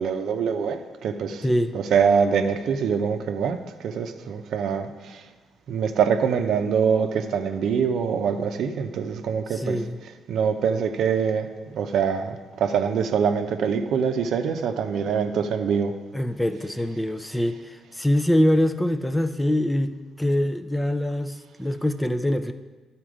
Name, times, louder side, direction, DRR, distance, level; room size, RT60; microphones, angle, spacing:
voice 1, 0.0-1.4 1.7-5.2 5.7-9.8 10.3-15.9, right 6 dB, 75° right, 7 dB, 0.6 m, -24 dB
voice 2, 1.4-1.7 9.5-10.0 16.1-22.5, left 1 dB, 10° left, 10 dB, 0.4 m, -24 dB
11.0 x 4.3 x 5.0 m, 1.3 s
cardioid pair, 90°, 0 cm